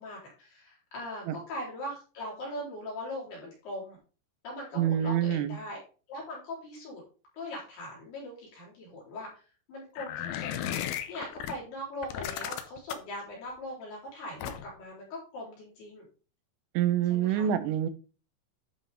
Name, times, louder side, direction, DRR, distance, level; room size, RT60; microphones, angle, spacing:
voice 1, 0.0-4.0 4.4-5.8 6.1-7.0 7.3-9.4 9.7-10.7 11.1-16.0 17.1-17.5, left 1 dB, 55° left, -4 dB, 6.0 m, -40 dB
voice 2, 4.8-5.6 16.7-17.9, right 10 dB, 90° right, 10 dB, 3.5 m, -26 dB
sound 1, 10.0-11.5 12.0-13.1 14.4-14.8, left 11 dB, 80° left, 2.2 m, -35 dB
11.5 x 5.6 x 3.7 m, 0.36 s
omnidirectional pair, 5.7 m